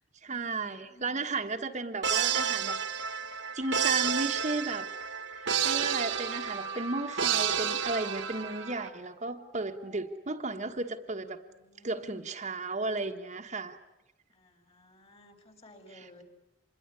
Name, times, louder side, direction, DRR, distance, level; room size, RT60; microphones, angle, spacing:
voice 1, 0.2-2.8 3.5-4.9 5.6-11.4 11.8-13.8 16.0-16.1, right 3 dB, 40° right, 4 dB, 1.4 m, -34 dB
voice 2, 0.9-1.2 11.4-12.3 14.3-16.2, left 1 dB, 30° left, 6 dB, 3.5 m, -56 dB
sound 1, 2.0-8.9, right 7 dB, 70° right, 1.7 m, -31 dB
sound 2, 5.9-10.4, right 3 dB, 15° right, 1.0 m, -45 dB
26.0 x 22.0 x 9.9 m, 0.96 s
head